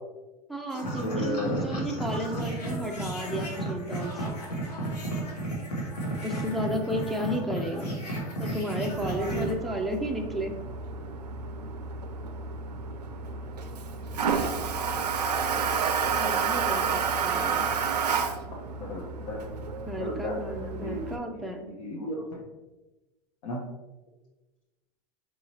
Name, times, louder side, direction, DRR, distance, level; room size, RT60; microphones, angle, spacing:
voice 1, 0.5-4.4 6.2-7.9 8.4-10.6 16.2-17.6 19.9-21.7, equal, ahead, 1 dB, 0.5 m, -33 dB
sound 1, 0.7-9.5, right 1 dB, 80° left, 1.2 m, -33 dB
voice 2, 1.0-1.7 18.8-19.5 20.0-20.4 20.8-21.0 21.3-21.4 21.8-22.4 23.4-23.6, left 1 dB, 60° left, -3 dB, 0.8 m, -34 dB
Toilet flush, 8.9-21.2, right 6 dB, 90° right, 0.4 m, -30 dB
4.6 x 2.8 x 2.8 m, 1.1 s
hypercardioid pair, 100°, 20 cm